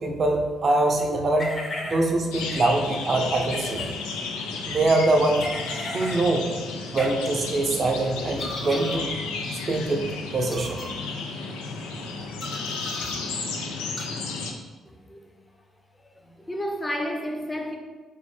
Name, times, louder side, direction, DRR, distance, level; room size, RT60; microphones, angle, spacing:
voice 1, 0.0-4.0 4.7-5.5 5.9-6.5 6.9-9.1 9.7-10.1 10.3-10.8, right 2 dB, 45° right, 2 dB, 0.6 m, -23 dB
sound 1, 1.4-2.0 2.4-2.6 3.4-3.9 5.4-6.2 7.0-7.1 8.4-9.0 9.4-9.6 10.4-10.9 12.4-13.2 14.0-14.1, left 1 dB, 40° left, 1.1 m, -35 dB
sound 2, 2.3-14.5, left 4 dB, 85° left, 0.4 m, -33 dB
voice 2, 14.9-15.4 16.1-17.8, equal, 20° left, 2 dB, 0.7 m, -32 dB
4.0 x 3.1 x 3.2 m, 1.3 s
hypercardioid pair, 45°, 0 cm